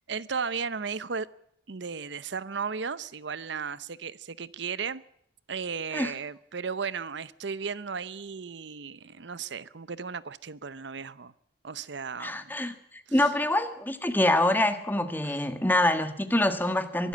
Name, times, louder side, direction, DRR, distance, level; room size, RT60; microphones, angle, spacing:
voice 1, 0.1-1.3 1.7-5.0 5.5-11.3 11.6-12.5 13.2-13.3 15.2-15.4, right 5 dB, 65° right, 0.7 m, -35 dB
voice 2, 12.2-17.1, left 1 dB, 10° left, 1.6 m, -25 dB
24.0 x 12.5 x 8.5 m
head